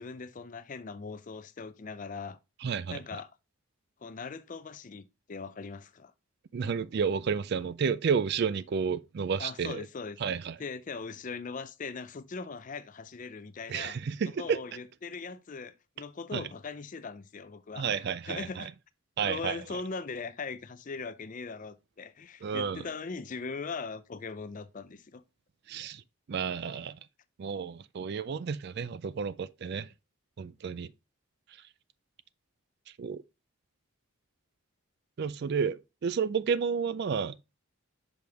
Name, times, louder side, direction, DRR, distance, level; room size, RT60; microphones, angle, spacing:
voice 1, 0.0-2.4 2.9-3.3 4.0-6.1 9.4-10.2 10.6-14.0 14.3-18.7 19.2-25.2, left 4 dB, 35° left, 0.4 m, -40 dB
voice 2, 2.6-3.0 6.5-9.9 10.2-10.6 13.7-14.6 16.3-16.4 17.8-18.7 19.2-19.6 22.4-22.8 25.7-26.0 26.3-27.0 27.4-29.9 30.4-30.9 33.0-33.2 35.2-37.4, right 6 dB, 50° right, 0.3 m, -31 dB
6.1 x 5.2 x 3.4 m
head